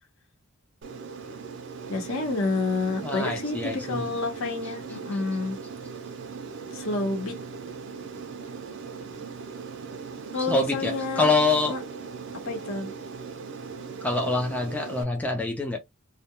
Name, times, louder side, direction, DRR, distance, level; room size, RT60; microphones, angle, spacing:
Aircraft, 0.8-15.0, right 5 dB, 55° right, 0.5 m, -39 dB
voice 1, 1.9-5.6 6.7-7.4 10.3-11.3 11.7-11.8 12.4-12.9, left 3 dB, 65° left, 0.8 m, -29 dB
voice 2, 3.0-4.1 10.4-11.8 14.0-15.8, left 3 dB, 5° left, 0.3 m, -25 dB
2.2 x 2.1 x 2.8 m
head